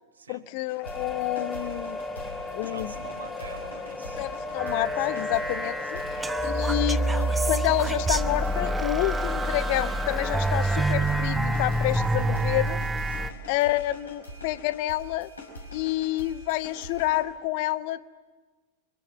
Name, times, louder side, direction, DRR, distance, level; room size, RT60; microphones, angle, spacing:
voice 1, 0.3-2.0 2.5-2.9 4.2-6.0 6.4-12.8 13.5-15.3 15.7-18.0, left 16 dB, 45° left, 16 dB, 0.8 m, -28 dB
sound 1, 0.7-17.2, left 1 dB, 75° left, 5.3 m, -44 dB
sound 2, 0.8-10.9, left 3 dB, 15° left, 2.6 m, -34 dB
voice 2, 2.6-4.2 5.0-5.3 5.9-6.1 9.3-9.5 13.1-13.4, right 5 dB, 70° right, 2 dB, 2.6 m, -46 dB
sound 3, 4.6-13.3, right 2 dB, 10° right, 0.9 m, -27 dB
30.0 x 24.0 x 7.7 m, 1.3 s
figure-of-eight pair, 90°, 0 cm